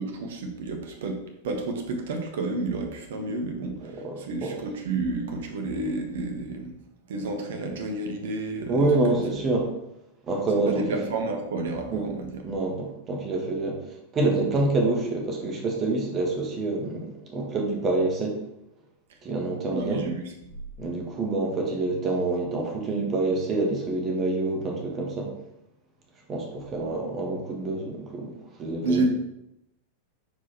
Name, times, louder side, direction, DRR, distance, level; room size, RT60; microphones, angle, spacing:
voice 1, 0.0-6.7 7.1-9.2 10.6-12.4 19.7-20.2 28.8-29.0, right 3 dB, 55° right, 4 dB, 1.2 m, -30 dB
voice 2, 3.9-4.6 8.7-9.7 10.3-10.8 11.9-12.1 12.4-13.8 14.1-18.4 19.2-20.0 20.8-25.3 26.3-29.0, right 2 dB, 25° right, 0 dB, 1.6 m, -27 dB
5.7 x 4.8 x 4.4 m, 0.83 s
figure-of-eight pair, 90°, 0 cm